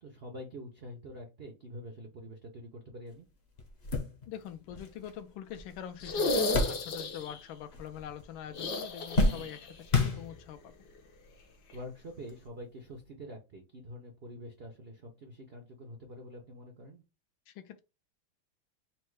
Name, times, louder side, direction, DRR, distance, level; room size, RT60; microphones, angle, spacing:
voice 1, 0.0-3.3 9.4-9.5 11.7-17.0, equal, 80° right, 0.5 m, -46 dB
sound 1, 3.1-3.2 3.6-7.4 7.6-8.3 8.6-10.7 11.5-11.6 12.9-13.0, left 2 dB, 45° left, 0.8 m, -32 dB
voice 2, 4.3-10.9 17.5-17.8, left 10 dB, 80° left, 1.4 m, -44 dB
sound 2, 6.0-7.4 8.5-9.7 10.0-10.1 11.7-11.8, left 2 dB, 65° left, 1.3 m, -33 dB
4.3 x 2.1 x 4.6 m
omnidirectional pair, 2.2 m